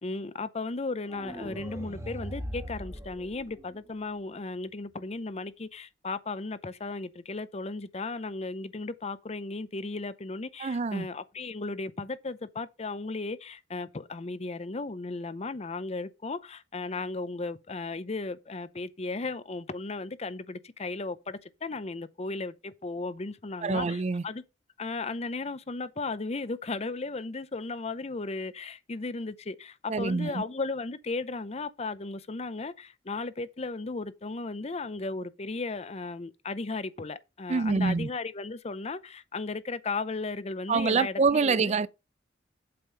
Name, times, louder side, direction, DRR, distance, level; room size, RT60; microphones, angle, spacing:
voice 1, 0.0-24.4 24.8-41.7, left 3 dB, 35° left, 0.6 m, -35 dB
sound 1, 1.1-4.1, equal, 15° right, 1.5 m, -40 dB
voice 2, 10.6-11.1 23.6-24.2 29.9-30.4 37.5-38.1 40.7-41.9, right 4 dB, 35° right, 0.4 m, -26 dB
7.7 x 5.4 x 5.5 m
head